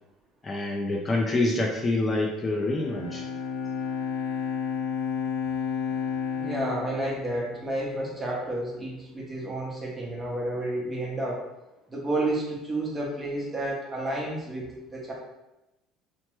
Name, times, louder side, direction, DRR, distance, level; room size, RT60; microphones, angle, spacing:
voice 1, 0.4-3.2, left 2 dB, 25° left, 0 dB, 0.4 m, -26 dB
Bowed string instrument, 2.5-7.9, left 6 dB, 90° left, 0.4 m, -32 dB
voice 2, 6.4-11.4 11.9-15.1, right 1 dB, 20° right, -3 dB, 0.9 m, -31 dB
2.9 x 2.1 x 3.0 m, 0.97 s
supercardioid pair, 105°, 0 cm